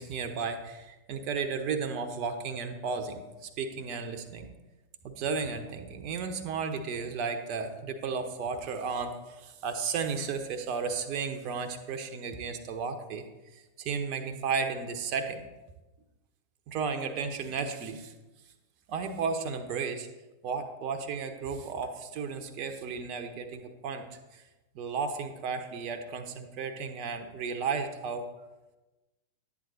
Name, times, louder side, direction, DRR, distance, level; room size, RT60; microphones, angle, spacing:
voice 1, 0.0-4.5 5.0-13.3 13.5-15.4 16.7-18.1 18.9-20.1 20.4-24.4 24.7-28.3, right 5 dB, 40° right, 6 dB, 1.1 m, -34 dB
11.5 x 8.5 x 4.1 m, 1.1 s
figure-of-eight pair, 90°, 0 cm